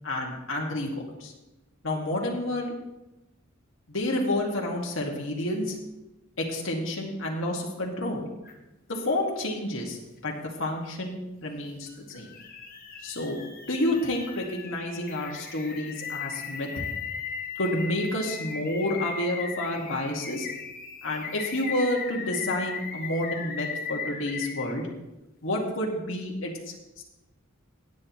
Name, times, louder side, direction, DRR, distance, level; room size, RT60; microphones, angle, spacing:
voice 1, 0.0-0.9 1.2-1.3 1.8-2.7 3.9-5.8 6.4-8.2 8.9-10.0 10.2-12.3 13.0-13.4 13.7-16.7 17.6-20.5 21.0-24.9 25.4-27.0, left 1 dB, 70° left, -1 dB, 2.0 m, -29 dB
sound 1, 8.4-8.5 11.9-24.7, left 6 dB, 45° left, 1.7 m, -37 dB
17.5 x 9.4 x 3.1 m, 0.99 s
head